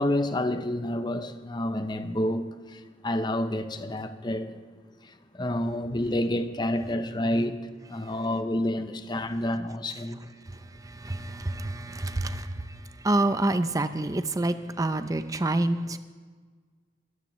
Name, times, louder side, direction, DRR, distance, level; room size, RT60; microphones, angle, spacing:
voice 1, 0.0-4.6 5.3-7.6 7.9-10.2, left 1 dB, 25° left, 0.7 m, -29 dB
voice 2, 10.6-16.0, right 2 dB, 20° right, 0.5 m, -28 dB
21.5 x 14.0 x 3.1 m
head